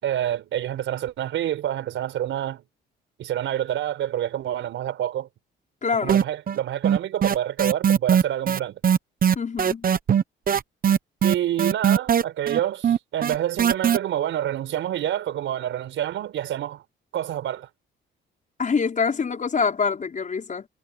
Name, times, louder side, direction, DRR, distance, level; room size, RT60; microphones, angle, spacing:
voice 1, 0.0-2.6 3.2-5.3 6.0-8.8 11.2-16.8 17.1-17.7, right 11 dB, 80° right, 4.8 m, -27 dB
voice 2, 5.8-6.2 9.3-9.9 18.6-20.7, left 5 dB, 40° left, 5.2 m, -25 dB
sound 1, 6.1-6.6 6.8-14.0, right 8 dB, 45° right, 1.0 m, -19 dB
cardioid pair, 90°, 20 cm